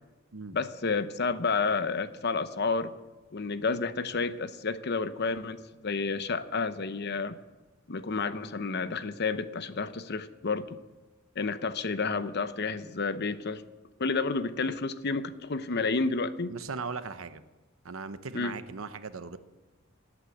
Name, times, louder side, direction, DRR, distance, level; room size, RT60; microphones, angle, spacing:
voice 1, 0.5-2.9 3.3-7.4 7.9-10.8 11.4-13.6 14.0-16.5 18.3-18.6, left 4 dB, 55° left, 12 dB, 0.8 m, -30 dB
voice 2, 16.5-17.4 17.8-19.4, right 4 dB, 85° right, 11 dB, 0.9 m, -38 dB
18.0 x 8.7 x 8.0 m, 1.2 s
head